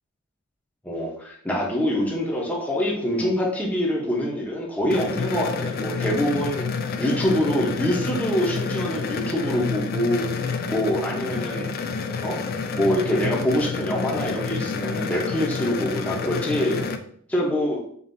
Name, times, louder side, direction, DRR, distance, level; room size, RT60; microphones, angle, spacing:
voice 1, 0.8-6.7 7.0-10.3 10.7-11.7 12.2-12.4 12.7-16.8 17.3-17.8, equal, 5° left, -3 dB, 0.7 m, -25 dB
sound 1, 4.9-17.0, left 5 dB, 45° left, 0.3 m, -29 dB
5.4 x 2.5 x 2.6 m, 0.62 s
head